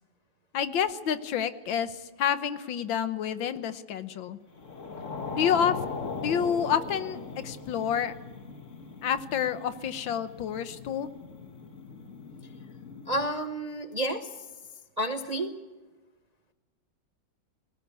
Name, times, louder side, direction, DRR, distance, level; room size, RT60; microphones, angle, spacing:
voice 1, 0.5-4.4 5.3-5.8 6.2-8.2 9.0-11.1, left 8 dB, 85° left, 12 dB, 1.8 m, -29 dB
sound 1, 4.6-13.3, left 4 dB, 45° left, 1.7 m, -39 dB
voice 2, 13.1-14.5 15.0-15.5, right 1 dB, 40° right, 7 dB, 0.6 m, -30 dB
19.5 x 18.0 x 8.4 m, 1.2 s
omnidirectional pair, 2.0 m